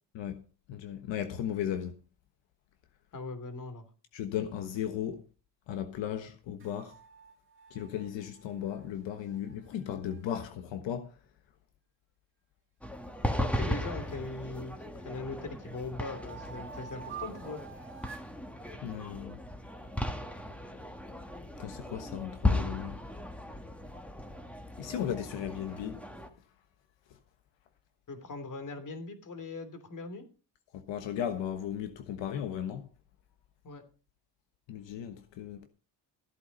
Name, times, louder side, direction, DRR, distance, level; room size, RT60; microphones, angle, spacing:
voice 1, 0.7-1.9 4.1-5.2 5.7-7.0 7.7-11.1 18.8-19.4 21.6-23.0 24.8-26.0 30.7-32.9 34.7-35.7, left 9 dB, 75° left, 1.4 m, -36 dB
voice 2, 3.1-3.8 13.4-17.6 28.1-30.2 33.6-33.8, left 3 dB, 45° left, 3.1 m, -40 dB
sound 1, 6.6-10.4 13.4-14.6 15.1-18.3, right 8 dB, 25° right, 2.3 m, -50 dB
sound 2, 12.8-26.3, left 1 dB, 5° left, 1.8 m, -36 dB
14.5 x 8.4 x 5.4 m
cardioid pair, 95°, 44 cm